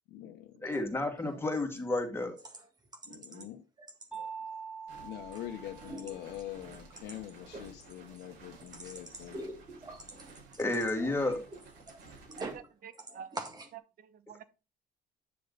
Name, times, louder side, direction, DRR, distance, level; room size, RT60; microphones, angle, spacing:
voice 1, 0.1-0.7 3.1-3.6 5.0-9.4, left 12 dB, 80° left, 1.0 m, -44 dB
voice 2, 0.6-2.4 10.6-11.4, left 2 dB, 15° left, 2.5 m, -31 dB
sound 1, 0.6-0.8 1.2-1.4 1.8-1.9 2.4-3.5 3.8-4.5 4.9-5.5 5.7-12.7 12.9-13.7, right 2 dB, 25° right, 1.8 m, -46 dB
voice 3, 3.1-3.5 12.4-13.4 13.7-13.8 14.3-14.4, right 8 dB, 60° right, 1.1 m, -48 dB
Mallet percussion, 4.1-6.6, right 6 dB, 5° right, 1.8 m, -44 dB
sound 2, 4.9-12.6, right 3 dB, 80° right, 5.8 m, -54 dB
10.0 x 6.6 x 4.1 m
cardioid pair, 110°, 17 cm